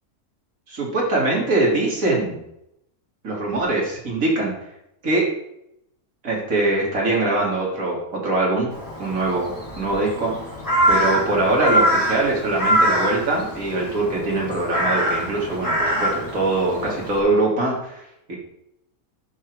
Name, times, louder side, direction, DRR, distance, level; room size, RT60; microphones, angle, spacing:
voice 1, 0.7-2.4 3.2-4.5 5.0-5.3 6.2-8.7 9.0-10.3 10.9-18.4, right 2 dB, 65° right, -2 dB, 3.2 m, -22 dB
Crow, 8.7-17.2, equal, 15° left, 2.8 m, -24 dB
11.0 x 5.8 x 4.9 m, 0.80 s
omnidirectional pair, 1.6 m